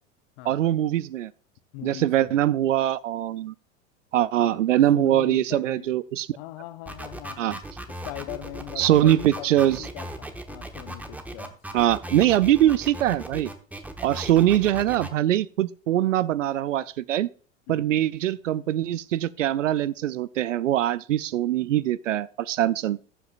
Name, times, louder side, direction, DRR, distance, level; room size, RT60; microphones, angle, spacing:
voice 1, 0.5-1.3 1.8-3.5 4.1-6.3 7.4-7.6 8.8-9.8 11.7-13.5 14.0-17.3 17.7-23.0, right 12 dB, 70° right, 0.6 m, -22 dB
voice 2, 1.7-2.3 4.4-4.6 4.9-5.9 6.3-7.6 7.9-11.6 17.7-17.9, left 16 dB, 45° left, 0.9 m, -40 dB
sound 1, 6.9-15.1, right 1 dB, 5° right, 1.1 m, -37 dB
19.5 x 7.8 x 2.5 m
figure-of-eight pair, 85°, 39 cm